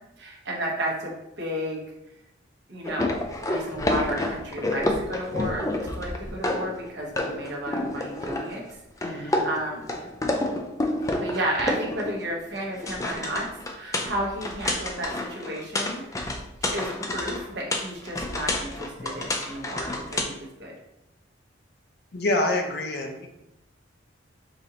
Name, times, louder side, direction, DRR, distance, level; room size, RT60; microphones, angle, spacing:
voice 1, 0.2-1.8 2.7-8.6 9.0-10.0 11.2-16.3 16.7-20.3 20.6-20.7, right 1 dB, 60° right, -2 dB, 1.0 m, -33 dB
sound 1, 2.8-6.9 7.2-8.7 9.0-12.3 12.6-20.2, left 2 dB, 15° left, 0.3 m, -29 dB
voice 2, 9.0-9.5 22.1-23.3, left 2 dB, 55° left, 3 dB, 0.6 m, -27 dB
4.9 x 2.6 x 2.8 m, 0.87 s
head